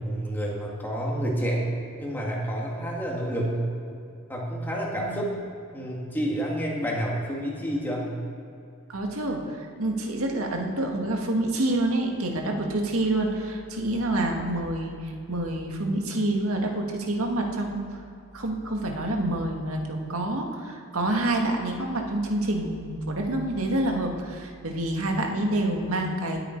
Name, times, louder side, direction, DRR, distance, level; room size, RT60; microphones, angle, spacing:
voice 1, 0.0-1.7 2.0-3.7 4.3-5.3 5.7-8.2, equal, 10° left, -3 dB, 2.2 m, -29 dB
voice 2, 5.0-5.3 8.9-17.8 18.3-26.4, right 1 dB, 80° right, 1 dB, 1.9 m, -27 dB
19.5 x 8.9 x 4.6 m, 2.5 s
head